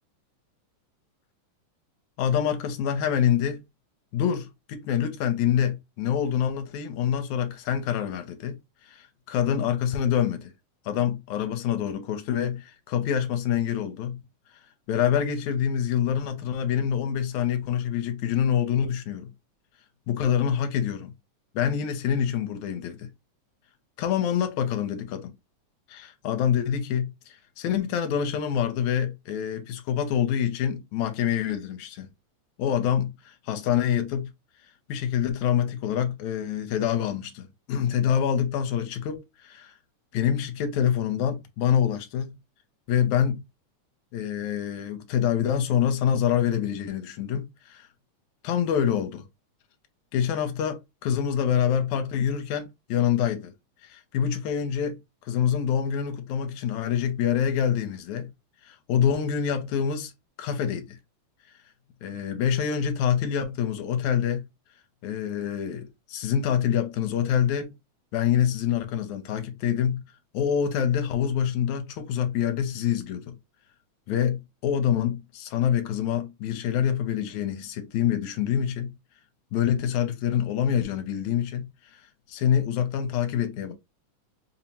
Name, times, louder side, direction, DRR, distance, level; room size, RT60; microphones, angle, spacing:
voice 1, 2.2-3.6 4.1-8.6 8.8-10.5 10.9-14.2 14.9-19.3 20.1-21.1 21.5-23.1 24.0-25.3 25.9-32.1 32.6-34.3 34.9-39.7 40.1-42.4 42.9-43.4 44.1-47.9 48.4-49.2 50.1-53.5 53.8-58.3 58.6-60.1 60.4-61.0 62.0-64.4 65.0-67.8 68.1-70.0 70.3-73.4 74.1-79.0 79.5-81.7 81.9-82.0 82.3-83.7, left 9 dB, 80° left, 1.9 m, -26 dB
5.4 x 2.0 x 2.8 m
omnidirectional pair, 3.4 m